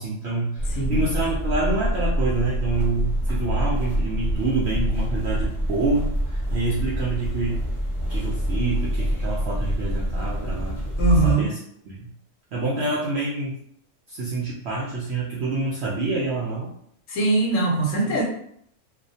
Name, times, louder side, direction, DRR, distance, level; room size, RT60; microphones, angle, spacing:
voice 1, 0.0-7.6 8.1-10.8 11.2-11.6 11.9-12.1 12.5-13.6 14.1-16.7 18.1-18.2, right 3 dB, 70° right, -5 dB, 0.6 m, -27 dB
sound 1, 0.6-11.3, equal, 20° left, 0.7 m, -26 dB
voice 2, 11.0-11.5 17.1-18.2, right 2 dB, 70° left, -2 dB, 0.9 m, -21 dB
2.4 x 2.0 x 2.6 m, 0.68 s
omnidirectional pair, 1.5 m